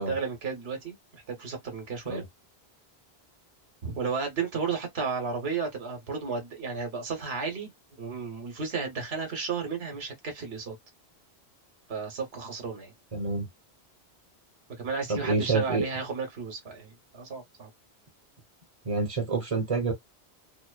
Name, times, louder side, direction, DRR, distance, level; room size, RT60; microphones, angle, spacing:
voice 1, 0.0-2.2 3.8-7.7 8.0-10.7 11.9-12.9 14.8-17.7, right 5 dB, 70° right, 1.3 m, -33 dB
voice 2, 13.1-13.5 15.1-15.9 18.8-19.9, right 4 dB, 35° right, 1.0 m, -27 dB
2.9 x 2.0 x 2.2 m
omnidirectional pair, 1.1 m